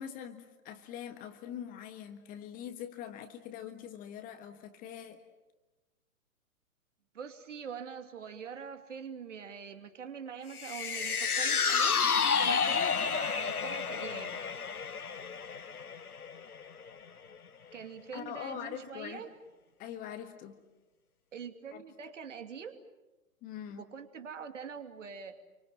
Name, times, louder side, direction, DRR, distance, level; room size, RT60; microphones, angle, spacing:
voice 1, 0.0-5.2 17.6-17.8 18.1-19.2 19.8-20.6 21.7-21.8 23.4-23.8, left 9 dB, 20° left, 8 dB, 1.5 m, -43 dB
voice 2, 7.1-14.5 17.7-19.3 21.3-22.8 23.7-25.4, right 7 dB, 55° right, 6 dB, 2.8 m, -44 dB
sound 1, 10.5-17.0 17.3-17.4, left 6 dB, 80° left, 1.1 m, -30 dB
28.5 x 24.5 x 7.7 m, 1.1 s
figure-of-eight pair, 120°, 44 cm